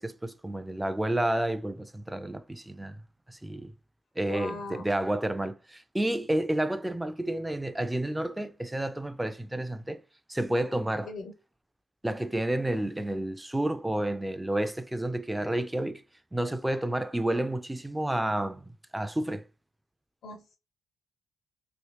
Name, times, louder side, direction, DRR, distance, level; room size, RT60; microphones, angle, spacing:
voice 1, 0.0-3.0 3.3-3.7 4.2-10.0 10.3-11.1 12.0-16.0 16.3-19.4, right 1 dB, 10° right, 0.3 m, -30 dB
voice 2, 4.3-4.8 11.0-11.3 20.2-20.6, left 3 dB, 70° left, 0.5 m, -38 dB
3.1 x 2.8 x 2.8 m
cardioid pair, 90°, 0 cm